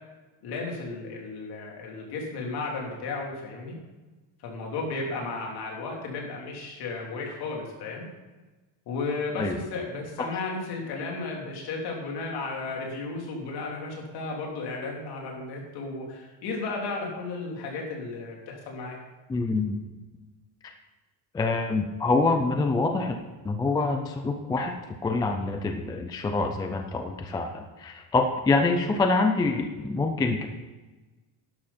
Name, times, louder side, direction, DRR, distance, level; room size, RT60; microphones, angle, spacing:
voice 1, 0.4-3.8 4.4-8.1 8.9-19.0, left 3 dB, 50° left, -1 dB, 3.5 m, -34 dB
voice 2, 19.3-19.8 20.6-20.7 21.3-23.2 23.4-30.5, left 3 dB, 10° left, 5 dB, 0.3 m, -26 dB
12.0 x 11.5 x 4.3 m, 1.2 s
cardioid pair, 170°, 47 cm